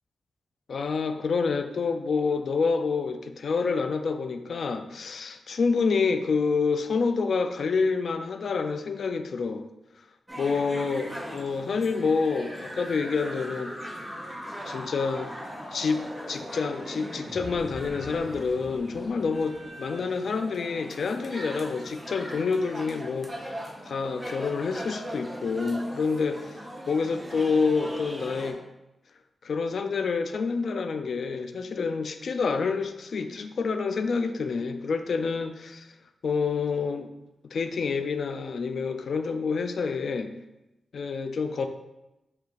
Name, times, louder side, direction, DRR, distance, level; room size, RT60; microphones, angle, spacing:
voice 1, 0.7-9.6 10.4-13.7 14.6-15.3 15.7-16.0 16.3-26.6 26.9-28.6 29.4-35.9 36.2-37.1 37.5-40.3 40.9-41.7, left 4 dB, 70° left, 7 dB, 0.3 m, -28 dB
sound 1, 10.3-28.5, equal, 10° right, 0.8 m, -41 dB
sound 2, 11.8-19.7, equal, 20° left, 1.4 m, -42 dB
5.4 x 2.4 x 4.0 m, 0.96 s
wide cardioid pair, 105°, 0 cm